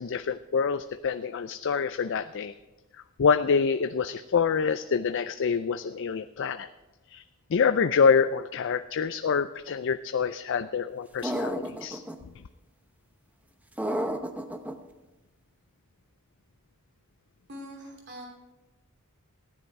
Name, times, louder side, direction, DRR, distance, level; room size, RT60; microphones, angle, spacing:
voice 1, 0.0-2.5 3.2-6.7 7.1-7.2 7.5-12.0, left 6 dB, 55° left, 10 dB, 0.4 m, -26 dB
sound 1, 11.2-12.1 13.8-14.7, right 1 dB, 5° right, 0.8 m, -31 dB
voice 2, 17.5-18.3, equal, 50° right, 1 dB, 3.0 m, -42 dB
15.5 x 10.5 x 4.7 m, 1.1 s
head